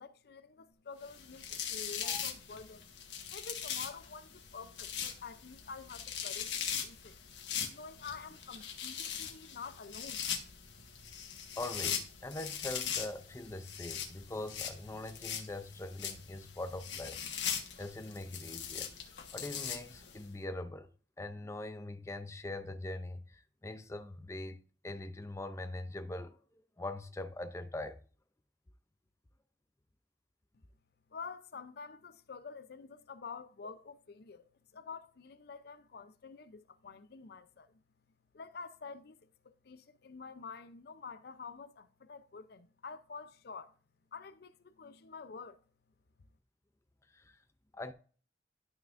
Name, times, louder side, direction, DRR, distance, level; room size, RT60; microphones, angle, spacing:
voice 1, 0.0-2.9 3.3-7.2 7.7-10.3 31.1-37.8 38.3-43.7 44.1-45.6, left 5 dB, 65° left, 0.6 m, -48 dB
sound 1, 1.0-20.2, left 8 dB, 85° left, 1.4 m, -41 dB
voice 2, 11.6-17.2 17.5-18.9 19.3-20.9 21.2-24.6 24.8-28.0 47.1-47.4 47.7-47.9, left 2 dB, 15° left, 0.5 m, -42 dB
11.5 x 5.9 x 2.5 m
head